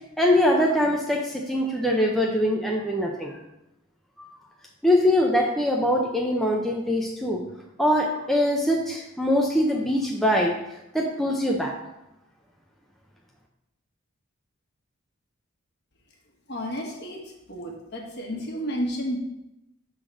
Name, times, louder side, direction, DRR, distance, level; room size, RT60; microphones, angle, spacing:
voice 1, 0.0-3.4 4.2-4.3 4.8-7.4 7.8-10.5 10.9-11.7, left 1 dB, ahead, -1 dB, 0.6 m, -23 dB
voice 2, 16.5-17.2 17.5-19.2, equal, 50° left, 0 dB, 1.5 m, -31 dB
6.5 x 3.9 x 6.1 m, 0.88 s
head